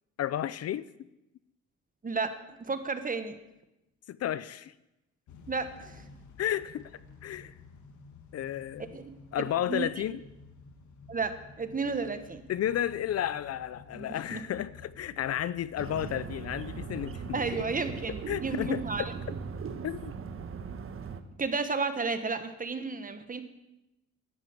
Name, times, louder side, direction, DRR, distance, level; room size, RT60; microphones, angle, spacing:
voice 1, 0.2-0.9 4.1-4.7 6.4-7.5 8.3-9.0 9.3-10.2 12.5-17.6 18.3-19.1 19.8-20.1, left 11 dB, 55° left, 18 dB, 0.5 m, -32 dB
voice 2, 2.0-3.4 5.5-6.0 8.9-9.1 9.7-9.9 11.1-12.5 13.9-14.4 17.3-19.1 21.4-23.4, right 4 dB, 30° right, 10 dB, 1.4 m, -32 dB
Motor vehicle (road) / Engine starting / Accelerating revving vroom, 5.3-20.2, left 4 dB, 70° left, 1.7 m, -53 dB
sound 1, 15.8-21.2, right 6 dB, 45° right, 1.2 m, -39 dB
11.0 x 11.0 x 7.4 m, 0.92 s
cardioid pair, 90°, 30 cm